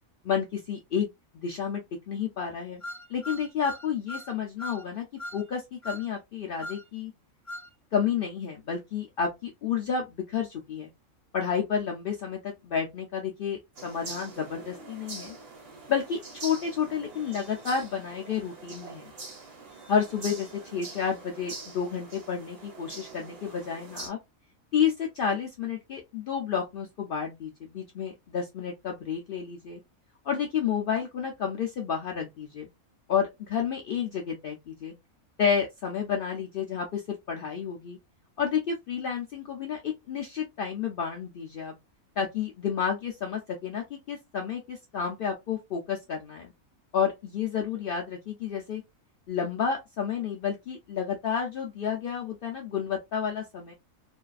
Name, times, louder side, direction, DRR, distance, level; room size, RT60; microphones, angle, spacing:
voice 1, 0.2-1.1 1.3-2.8 3.1-5.1 5.3-7.1 7.9-10.9 11.3-15.3 15.9-19.1 19.9-24.2 24.7-29.8 30.2-32.7 33.1-34.9 35.4-38.0 38.4-41.7 42.2-46.5 46.9-48.8 49.3-53.7, left 7 dB, 90° left, 0.4 m, -30 dB
sound 1, 2.8-4.3 4.6-4.8 5.2-5.4 5.8-6.1 6.6-6.8 7.5-7.7, left 1 dB, 20° left, 0.5 m, -39 dB
sound 2, 13.8-24.1, right 3 dB, 50° right, 1.0 m, -44 dB
2.6 x 2.4 x 2.2 m
omnidirectional pair, 1.5 m